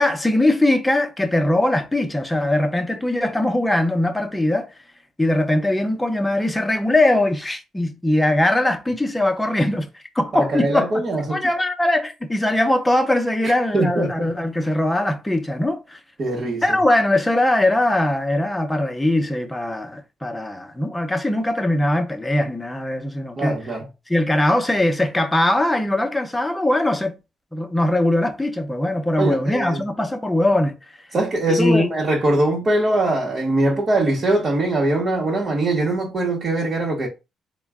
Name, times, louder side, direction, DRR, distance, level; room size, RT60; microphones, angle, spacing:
voice 1, 0.0-4.7 5.2-9.9 10.1-10.9 11.3-16.0 16.6-23.6 24.1-27.1 27.5-30.7 31.5-31.9, left 1 dB, 10° left, 0.7 m, -21 dB
voice 2, 10.3-11.4 13.4-14.3 16.2-16.6 23.4-23.9 29.2-29.8 31.1-37.1, right 2 dB, 45° right, 1.0 m, -22 dB
3.7 x 2.2 x 3.5 m
cardioid pair, 90°, 0 cm